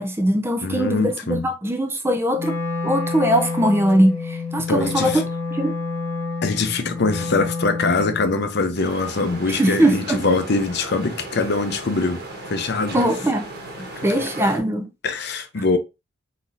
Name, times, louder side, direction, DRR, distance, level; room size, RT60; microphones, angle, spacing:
voice 1, 0.0-2.5 2.8-5.2 5.5-5.8 9.5-10.2 12.9-13.5 14.0-14.9, right 1 dB, 10° right, 0.5 m, -20 dB
voice 2, 0.6-1.5 4.7-5.2 6.4-12.2 12.5-13.0 14.0-14.2 15.0-15.8, left 3 dB, 55° left, 0.6 m, -23 dB
Wind instrument woodwind instrument, 2.3-8.3, left 4 dB, 15° left, 1.3 m, -28 dB
sound 1, 8.8-14.6, right 2 dB, 50° right, 1.3 m, -36 dB
4.1 x 4.0 x 2.6 m
head